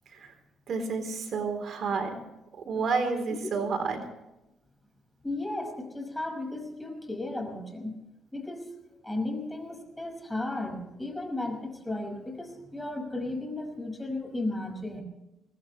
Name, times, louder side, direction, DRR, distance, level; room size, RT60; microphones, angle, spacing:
voice 1, 0.7-2.2 2.6-4.0, right 4 dB, 60° right, 6 dB, 3.7 m, -30 dB
voice 2, 5.2-8.0 8.3-8.7 9.0-15.0, left 2 dB, 10° left, 4 dB, 5.8 m, -34 dB
23.0 x 18.5 x 3.3 m, 0.93 s
cardioid pair, 90°, 0 cm